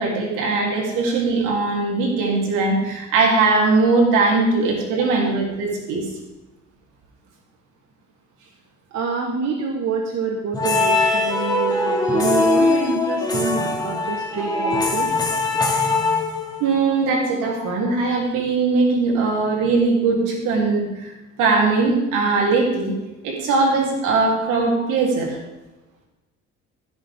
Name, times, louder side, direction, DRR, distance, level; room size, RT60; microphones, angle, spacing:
voice 1, 0.0-6.1 16.6-21.1 21.4-23.0 23.2-25.4, right 3 dB, 80° right, -1 dB, 3.6 m, -20 dB
voice 2, 8.9-15.1, right 5 dB, 60° right, 2 dB, 1.6 m, -26 dB
sound 1, 10.5-16.8, left 3 dB, 15° left, 2.3 m, -21 dB
16.5 x 8.8 x 3.7 m, 1.0 s
supercardioid pair, 80°, 31 cm